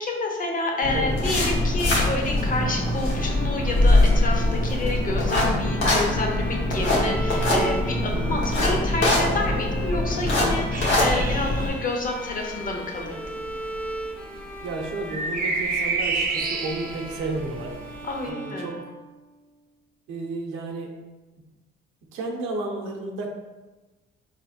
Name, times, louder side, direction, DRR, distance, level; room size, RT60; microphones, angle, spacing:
voice 1, 0.0-13.4 18.0-18.7, left 2 dB, 45° left, 1 dB, 0.8 m, -29 dB
sound 1, 0.8-11.7, left 1 dB, 75° left, 1.0 m, -23 dB
Bowed string instrument, 2.3-19.6, equal, 5° left, 0.5 m, -38 dB
sound 2, 10.7-18.3, right 4 dB, 45° right, 0.5 m, -32 dB
voice 2, 14.6-17.8 18.3-18.8 20.1-20.9 22.1-23.3, right 2 dB, 90° right, 0 dB, 0.6 m, -32 dB
4.0 x 3.2 x 2.4 m, 1.2 s
cardioid pair, 90°, 20 cm